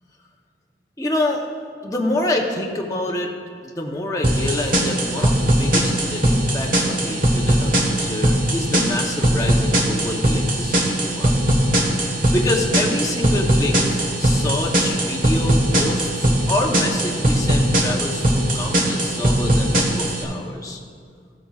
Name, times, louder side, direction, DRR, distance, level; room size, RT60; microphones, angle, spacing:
voice 1, 1.0-1.4 1.8-3.3 3.6-11.3 12.3-20.8, left 1 dB, 20° left, 0 dB, 0.8 m, -27 dB
sound 1, 4.2-20.2, right 1 dB, 50° right, 1.3 m, -20 dB
14.5 x 8.8 x 2.4 m, 2.1 s
head